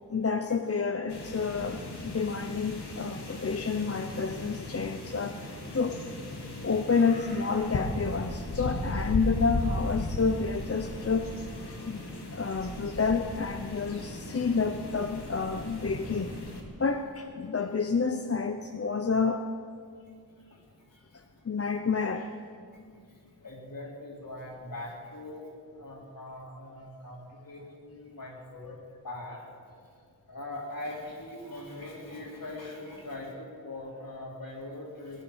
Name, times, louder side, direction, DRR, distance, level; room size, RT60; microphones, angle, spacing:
voice 1, 0.1-6.0 6.6-12.0 12.3-16.3 16.8-19.5 21.1-22.3, left 5 dB, 40° left, 7 dB, 0.6 m, -29 dB
sound 1, 1.1-16.6, left 2 dB, 85° left, 2.1 m, -37 dB
voice 2, 6.4-6.7 20.0-20.1 20.4-21.5 22.7-25.5 25.8-29.5 30.3-35.2, left 1 dB, 60° left, -2 dB, 3.6 m, -42 dB
19.5 x 11.0 x 6.4 m, 2.2 s
wide cardioid pair, 95°, 39 cm